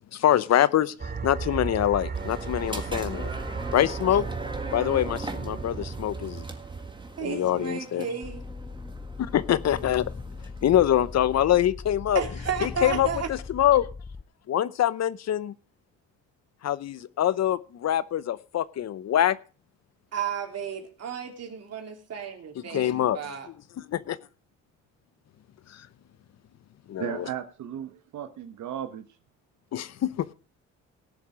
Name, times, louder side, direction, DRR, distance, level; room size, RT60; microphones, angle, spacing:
voice 1, 0.1-3.3 3.7-4.2 4.7-6.4 7.2-8.1 9.2-10.1 10.6-12.2 12.6-13.9 14.5-15.5 16.6-19.4 22.7-23.2 23.8-24.2 25.7-25.9 26.9-27.2 29.7-30.3, left 11 dB, 60° left, 0.8 m, -24 dB
sound 1, 1.0-7.6, right 4 dB, 30° right, 2.1 m, -35 dB
sound 2, 2.1-11.6, right 2 dB, 15° right, 1.8 m, -41 dB
voice 2, 2.8-3.5 7.2-8.4 12.1-13.3 20.1-23.5, right 7 dB, 55° right, 3.3 m, -33 dB
sound 3, 8.2-14.2, left 4 dB, 15° left, 0.5 m, -39 dB
voice 3, 27.0-29.0, right 10 dB, 75° right, 1.1 m, -35 dB
18.0 x 7.2 x 5.0 m
cardioid pair, 90°, 30 cm